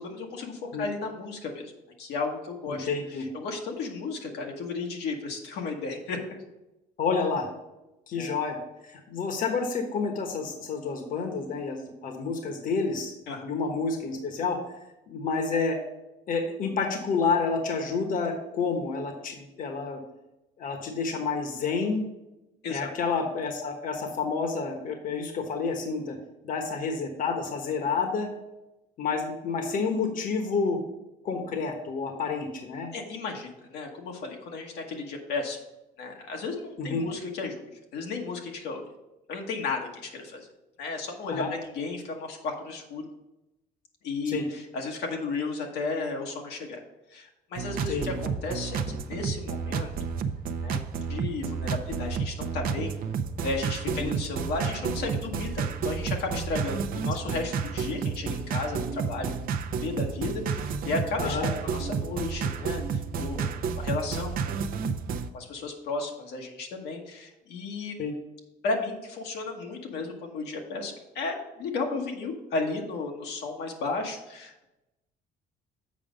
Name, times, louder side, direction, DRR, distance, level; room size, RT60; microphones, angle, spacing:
voice 1, 0.0-1.7 2.0-6.4 8.1-8.4 13.3-13.4 22.6-22.9 32.9-35.6 36.0-38.8 39.3-40.5 40.8-43.1 44.0-46.8 47.1-49.9 50.6-50.8 51.1-52.9 53.4-59.3 59.8-64.7 65.3-67.9 68.6-74.7, left 3 dB, 75° left, 1 dB, 1.3 m, -34 dB
voice 2, 2.7-3.2 7.0-7.5 8.1-8.6 8.9-13.1 13.4-14.6 15.1-15.8 16.3-20.0 20.6-22.0 22.7-26.2 26.4-28.3 29.0-30.8 31.2-32.9 36.8-37.1 41.3-41.5 44.3-44.5 47.9-48.1 53.9-54.1 61.2-61.5 68.0-68.1, left 4 dB, 55° left, 4 dB, 1.2 m, -29 dB
sound 1, 47.6-65.3, right 6 dB, 60° right, 0.6 m, -31 dB
7.5 x 4.9 x 5.1 m, 0.97 s
cardioid pair, 110°, 17 cm